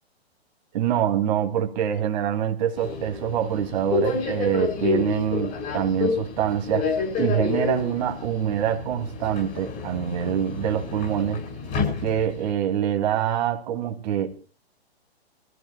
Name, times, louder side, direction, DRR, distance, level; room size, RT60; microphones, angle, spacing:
voice 1, 0.7-6.9 7.2-11.5 12.0-14.3, right 10 dB, 40° right, 2.6 m, -25 dB
Subway metro underground, 2.8-12.5, left 5 dB, 30° left, 8.0 m, -29 dB
27.0 x 14.5 x 2.3 m
hypercardioid pair, 130°, 33 cm